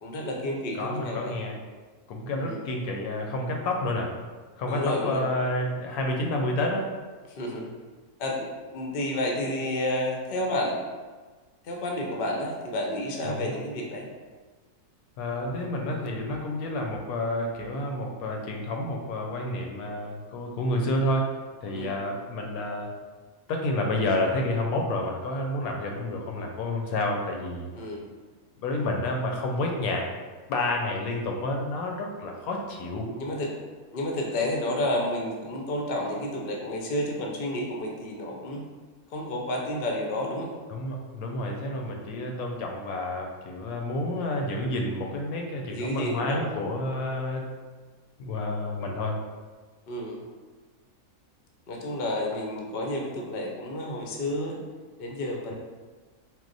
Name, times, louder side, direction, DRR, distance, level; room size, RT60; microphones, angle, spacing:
voice 1, 0.0-1.3 2.3-2.6 4.7-5.3 7.4-7.8 8.2-10.8 11.6-14.1 21.7-21.9 27.7-28.0 33.1-33.5 33.9-38.6 39.1-40.5 45.7-46.4 49.9-50.2 51.7-54.6 55.0-55.5, left 1 dB, 55° left, 0 dB, 0.6 m, -30 dB
voice 2, 0.7-1.6 2.1-4.1 4.6-6.9 13.2-13.5 15.2-21.3 21.6-22.9 23.5-27.7 28.6-30.1 30.5-33.1 40.7-47.5 48.2-49.2, left 1 dB, 75° left, 1 dB, 1.0 m, -29 dB
4.6 x 2.1 x 3.9 m, 1.4 s
omnidirectional pair, 1.7 m